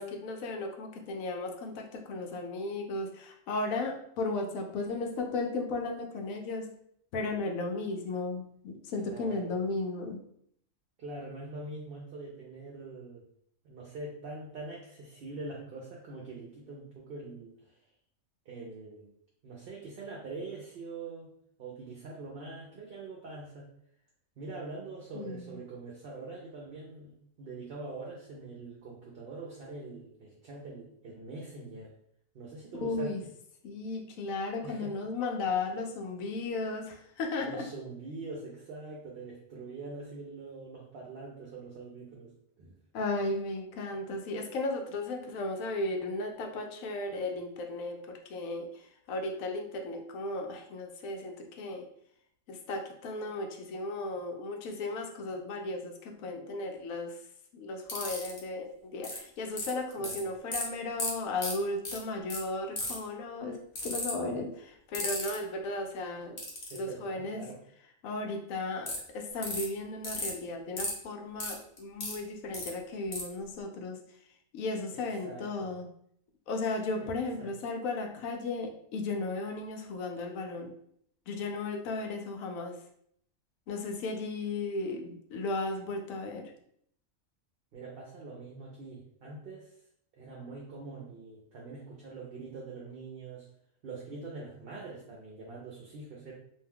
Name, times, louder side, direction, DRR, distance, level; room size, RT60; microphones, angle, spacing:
voice 1, 0.0-6.7 7.1-10.2 25.1-25.6 32.8-33.2 33.6-37.7 42.9-48.8 49.1-51.8 52.5-57.2 57.5-63.6 63.8-66.4 66.7-67.4 68.0-74.0 74.5-75.8 76.5-80.7 81.3-82.8 83.7-86.5, left 2 dB, 85° left, 3 dB, 1.0 m, -35 dB
voice 2, 9.0-9.6 11.0-13.2 13.6-17.8 18.5-19.1 19.4-21.3 21.6-23.7 24.4-31.9 32.3-33.3 34.6-34.9 37.4-42.8 60.0-60.2 66.7-67.6 74.9-75.7 77.0-77.1 77.4-77.5 87.7-89.7 90.2-93.5 93.8-96.3, right 3 dB, 55° right, -3 dB, 0.7 m, -44 dB
sound 1, 57.9-58.4 59.0-59.2 59.6-60.2 60.5-60.6 61.0-61.1 61.4-61.5 61.8-62.0 62.3-62.4 62.8-63.1 63.8-64.1 64.9-65.3 66.4-66.8 68.9-69.0 69.4-69.6 70.0-70.3 70.8-70.9 71.4-72.2 72.5-72.7 73.1-73.2, left 2 dB, 40° left, 0.8 m, -34 dB
2.6 x 2.2 x 3.4 m, 0.68 s
omnidirectional pair, 1.4 m